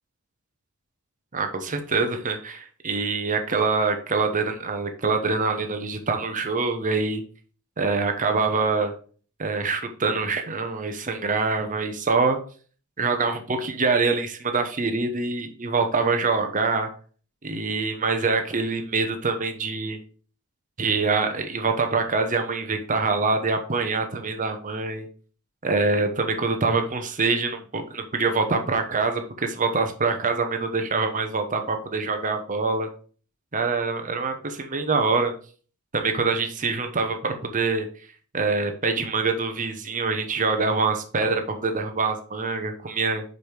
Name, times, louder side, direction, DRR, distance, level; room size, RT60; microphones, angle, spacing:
voice 1, 1.3-7.2 7.8-8.9 9.4-12.4 13.0-16.9 17.4-20.0 20.8-25.1 25.6-32.9 33.5-35.3 35.9-37.9 38.3-43.2, right 4 dB, 35° right, 5 dB, 1.0 m, -25 dB
5.4 x 5.0 x 4.8 m, 0.41 s
head